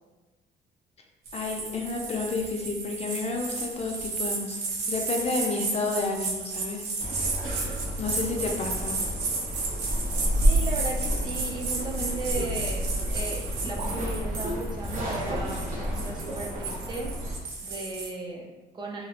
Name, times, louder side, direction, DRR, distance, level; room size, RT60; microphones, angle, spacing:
sound 1, 1.2-18.1, right 3 dB, 80° right, 0.7 m, -33 dB
voice 1, 1.3-4.6 4.9-6.9 8.0-9.0, left 3 dB, 40° left, 1 dB, 0.5 m, -30 dB
sound 2, 7.0-17.4, equal, 55° right, 1.0 m, -30 dB
voice 2, 10.3-17.1 17.6-19.1, right 2 dB, 25° right, -1 dB, 0.5 m, -36 dB
2.9 x 2.5 x 2.8 m, 1.2 s
cardioid pair, 110°, 17 cm